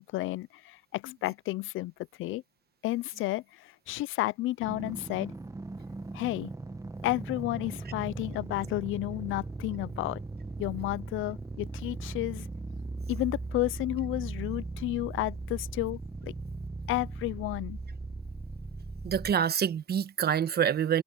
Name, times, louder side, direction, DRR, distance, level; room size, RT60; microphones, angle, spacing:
voice 1, 0.0-1.9 2.2-2.4 2.8-5.4 6.1-6.5 7.0-10.2 10.6-12.5 13.1-16.3 16.9-17.8, left 18 dB, 85° left, 0.5 m, -32 dB
sound 1, 4.6-19.3, right 3 dB, 15° right, 1.3 m, -39 dB
voice 2, 19.0-21.0, right 8 dB, 55° right, 1.2 m, -26 dB
cardioid pair, 90°, 20 cm